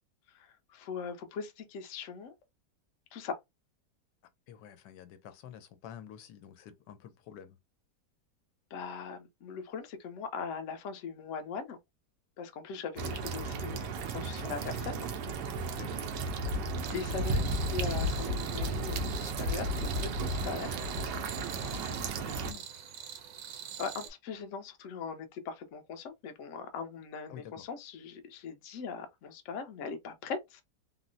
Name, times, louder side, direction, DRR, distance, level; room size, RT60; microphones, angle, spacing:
voice 1, 0.3-2.3 3.1-3.4 8.7-11.8 12.4-15.1 16.5-16.6 16.9-20.8 23.8-30.6, left 5 dB, 60° left, 0.8 m, -40 dB
voice 2, 4.5-7.6 15.7-15.9 21.6-21.7 22.3-22.6 27.3-27.6, left 9 dB, 90° left, 1.2 m, -49 dB
sound 1, 13.0-22.5, right 2 dB, 85° right, 1.3 m, -34 dB
sound 2, 16.8-24.1, right 9 dB, 70° right, 1.0 m, -46 dB
3.6 x 2.0 x 2.5 m
omnidirectional pair, 1.8 m